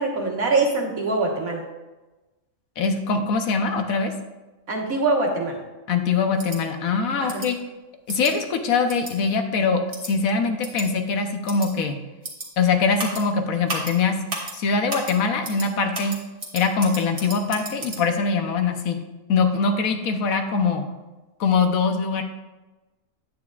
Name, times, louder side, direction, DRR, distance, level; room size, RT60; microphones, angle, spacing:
voice 1, 0.0-1.6 4.7-5.6 7.2-7.4, right 3 dB, 85° right, 0 dB, 1.8 m, -23 dB
voice 2, 2.8-4.1 5.9-7.6 8.1-12.0 12.6-14.2 14.5-16.2 16.5-19.0 19.3-20.9 21.4-22.2, left 4 dB, 85° left, 6 dB, 1.3 m, -22 dB
sound 1, 6.4-6.6 7.3-7.5 8.1-8.3 8.9-9.1 9.9-10.1 10.6-10.8 11.5-11.7 12.2-12.5 13.0-13.2 13.7-13.9 14.3-14.5 14.9-15.1 15.4-15.7 15.9-18.0, right 2 dB, 40° right, 1.6 m, -33 dB
9.3 x 8.9 x 2.4 m, 1.1 s
omnidirectional pair, 1.4 m